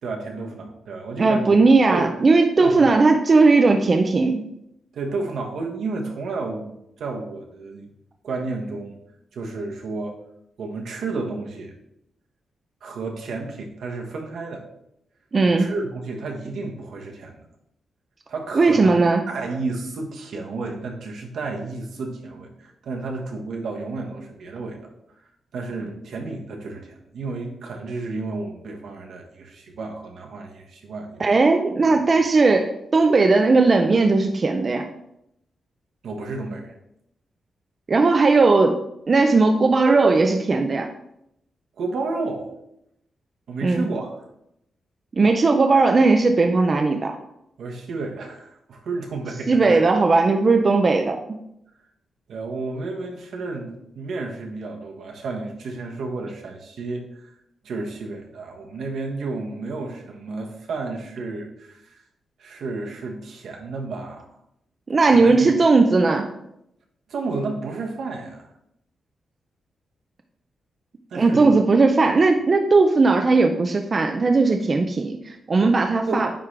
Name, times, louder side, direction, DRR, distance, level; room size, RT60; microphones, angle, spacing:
voice 1, 0.0-1.5 1.9-2.1 2.6-2.9 4.9-7.9 8.2-9.0 9.3-10.2 10.6-11.7 12.8-14.6 15.4-17.4 18.3-18.9 19.3-24.9 25.5-31.3 31.8-32.2 36.0-36.8 41.8-42.5 43.5-44.1 47.6-49.8 52.3-57.3 57.6-62.0 62.4-64.2 65.0-65.5 67.1-68.5 71.1-71.6 72.0-72.1 76.1-76.3, right 3 dB, 70° right, 1 dB, 1.2 m, -32 dB
voice 2, 1.2-4.4 15.3-15.7 18.6-19.2 31.2-34.8 37.9-38.8 39.1-40.9 43.6-43.9 45.1-47.1 49.5-51.4 64.9-66.3 71.2-76.3, right 3 dB, 30° right, 4 dB, 0.4 m, -17 dB
9.3 x 3.7 x 3.3 m, 0.78 s
wide cardioid pair, 170°, 0 cm